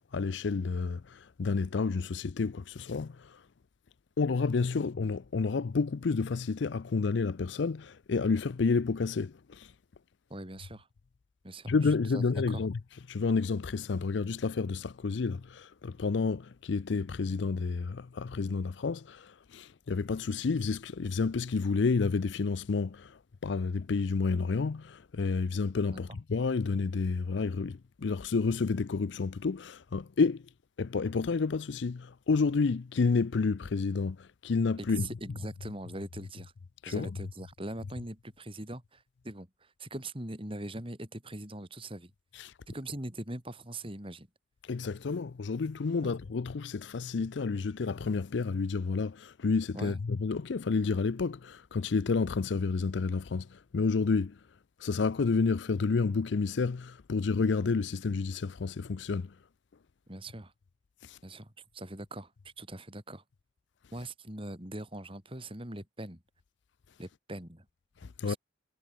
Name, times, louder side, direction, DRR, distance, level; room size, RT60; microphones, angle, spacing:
voice 1, 0.0-3.4 4.2-9.7 11.7-12.8 13.1-30.4 30.8-35.1 36.8-37.1 42.4-42.5 44.7-54.4 54.8-59.3 61.0-61.2 68.0-68.3, left 4 dB, 70° left, 0.5 m, -30 dB
voice 2, 10.3-10.9 11.4-12.6 34.8-36.5 36.9-42.1 42.7-44.3 49.7-50.0 60.1-60.5 61.2-63.2 63.9-66.2 67.0-67.7 68.2-68.4, right 1 dB, 25° right, 4.2 m, -42 dB
head